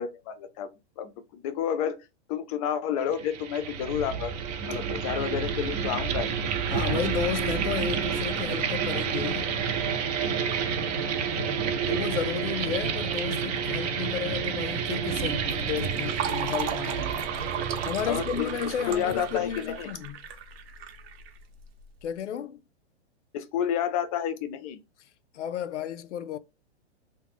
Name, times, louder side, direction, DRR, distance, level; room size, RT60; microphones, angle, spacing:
voice 1, 0.0-2.0 2.3-4.3 4.6-6.3 11.3-11.7 18.1-19.9 23.3-24.8, left 9 dB, 35° left, 0.5 m, -30 dB
sound 1, 3.1-19.8, right 7 dB, 35° right, 0.6 m, -30 dB
voice 2, 6.7-9.6 11.4-17.3 17.8-20.2 22.0-22.6 25.3-26.4, left 9 dB, 90° left, 0.5 m, -33 dB
Fill (with liquid), 15.4-21.8, right 8 dB, 60° right, 0.9 m, -36 dB
2.4 x 2.1 x 3.5 m
hypercardioid pair, 135°, 34 cm